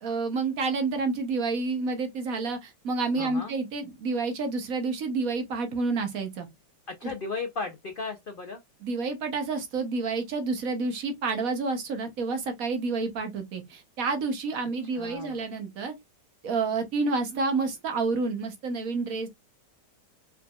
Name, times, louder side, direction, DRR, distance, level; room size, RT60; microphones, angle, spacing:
voice 1, 0.0-6.5 8.8-15.9 16.4-19.3, right 4 dB, 60° right, 1.3 m, -29 dB
voice 2, 3.2-3.5 6.9-8.6 14.9-15.4, left 4 dB, 65° left, 0.5 m, -35 dB
4.5 x 4.0 x 2.3 m
omnidirectional pair, 1.8 m